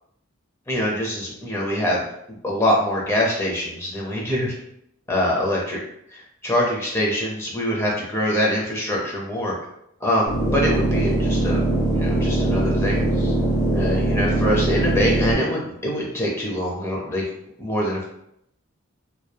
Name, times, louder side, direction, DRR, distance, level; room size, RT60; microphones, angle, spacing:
voice 1, 0.7-2.0 2.3-4.5 5.1-5.8 6.1-9.5 10.0-11.6 11.9-13.3 13.7-17.2 17.6-18.0, equal, 10° left, -3 dB, 0.5 m, -24 dB
sound 1, 10.3-15.3, right 2 dB, 10° right, 1.5 m, -21 dB
2.9 x 2.1 x 2.2 m, 0.77 s
head